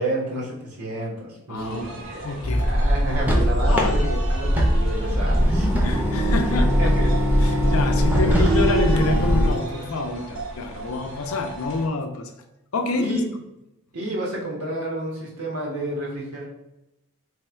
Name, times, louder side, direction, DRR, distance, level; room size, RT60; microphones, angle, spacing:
voice 1, 0.0-5.7 6.5-7.1 7.4-8.4 10.7-10.9 13.0-13.3 13.9-16.4, right 1 dB, 90° right, -4 dB, 1.3 m, -31 dB
voice 2, 1.5-1.9 2.2-2.7 3.7-4.2 5.0-5.2 5.8-7.1 7.4-12.3 12.7-13.2, left 3 dB, 75° left, 5 dB, 0.5 m, -27 dB
sound 1, 1.5-11.9, right 2 dB, 60° right, 0.9 m, -37 dB
sound 2, 2.4-9.5, equal, 5° right, 0.6 m, -20 dB
3.4 x 2.3 x 4.3 m, 0.90 s
head